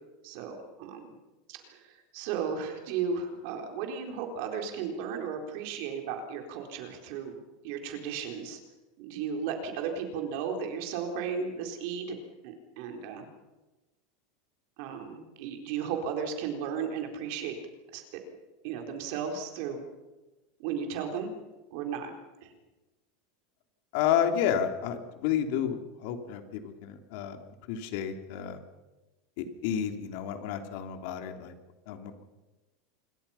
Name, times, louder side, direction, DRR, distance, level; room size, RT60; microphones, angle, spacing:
voice 1, 0.2-1.1 1.5-7.4 7.6-8.6 9.0-12.2 12.4-13.2 14.8-17.6 17.9-18.0 18.6-19.8 20.6-21.3 21.7-22.1 22.4-22.5, right 6 dB, 60° right, 4 dB, 4.1 m, -35 dB
voice 2, 23.9-27.4 27.7-28.6 29.4-31.5 31.9-32.2, left 9 dB, 60° left, 6 dB, 3.1 m, -31 dB
27.0 x 22.5 x 5.8 m, 1.1 s
supercardioid pair, 150°, 0 cm